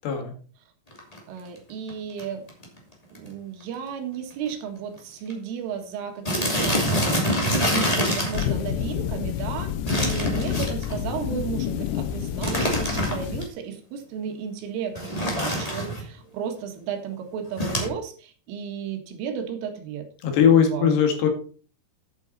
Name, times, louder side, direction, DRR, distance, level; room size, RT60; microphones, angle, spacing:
sound 1, 0.9-1.2 1.9-2.0 2.2-2.3 2.5-2.8 3.1-3.3 3.6-3.7 4.5-4.6 4.8-5.0 5.3-5.4 6.2-8.5 9.9-11.0 12.4-13.4 14.9-16.0 17.6-17.9, equal, 25° left, 0.7 m, -25 dB
voice 1, 1.3-2.4 3.1-6.9 7.4-20.1 20.6-21.0, right 7 dB, 75° right, 5 dB, 4.1 m, -34 dB
sound 2, 8.3-13.5, left 11 dB, 80° left, 2.6 m, -29 dB
voice 2, 20.2-21.3, left 7 dB, 60° left, 4 dB, 3.9 m, -20 dB
11.0 x 8.2 x 4.1 m, 0.39 s
omnidirectional pair, 5.9 m